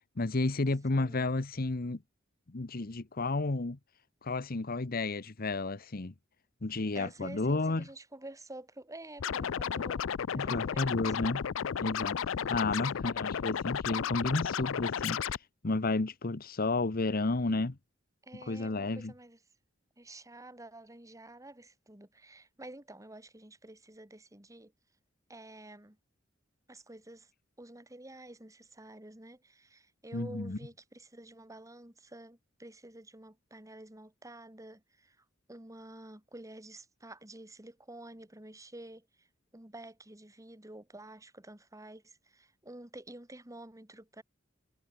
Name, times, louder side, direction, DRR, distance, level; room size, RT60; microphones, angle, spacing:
voice 1, 0.2-2.0 2.5-3.8 4.2-6.1 6.6-7.8 10.3-11.5 11.8-12.2 12.5-15.2 15.6-17.8 18.5-19.1 30.1-30.6, left 2 dB, 50° left, 1.0 m, -32 dB
voice 2, 0.9-1.3 6.9-10.1 10.3-11.2 12.4-12.7 18.2-19.4 20.0-24.7 25.3-26.0 26.7-27.3 27.6-39.3 39.5-44.2, right 1 dB, 15° right, 2.6 m, -50 dB
Scratching (performance technique), 9.2-15.4, left 7 dB, 85° left, 0.5 m, -33 dB
head